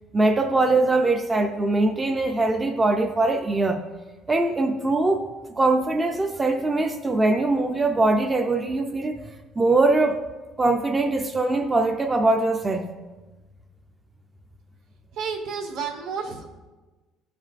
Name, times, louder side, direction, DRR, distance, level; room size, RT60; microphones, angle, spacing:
voice 1, 0.1-3.8 4.3-9.2 9.6-10.2 10.6-12.9, right 2 dB, 10° right, 4 dB, 0.3 m, -22 dB
voice 2, 15.1-16.5, right 5 dB, 70° right, 3 dB, 1.3 m, -31 dB
16.0 x 5.6 x 2.4 m, 1.2 s
cardioid pair, 180°, 0 cm